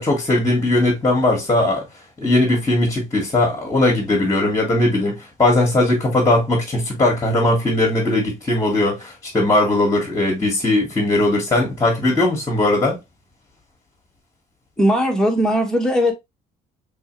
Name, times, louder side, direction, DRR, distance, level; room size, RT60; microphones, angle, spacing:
voice 1, 0.0-1.9 2.2-13.0, left 2 dB, 20° left, 1.7 m, -19 dB
voice 2, 14.8-16.1, equal, 5° left, 1.4 m, -18 dB
3.4 x 3.3 x 3.1 m
cardioid pair, 110°, 17 cm